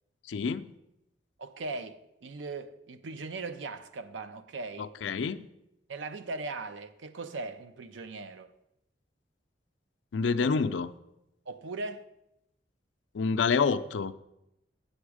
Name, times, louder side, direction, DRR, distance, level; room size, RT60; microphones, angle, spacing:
voice 1, 0.3-0.7 4.8-5.5 10.1-10.9 13.1-14.1, left 5 dB, 80° left, 0.4 m, -28 dB
voice 2, 1.4-4.9 5.9-8.5 11.5-12.1, right 3 dB, 90° right, 0.6 m, -39 dB
8.0 x 7.2 x 4.8 m
head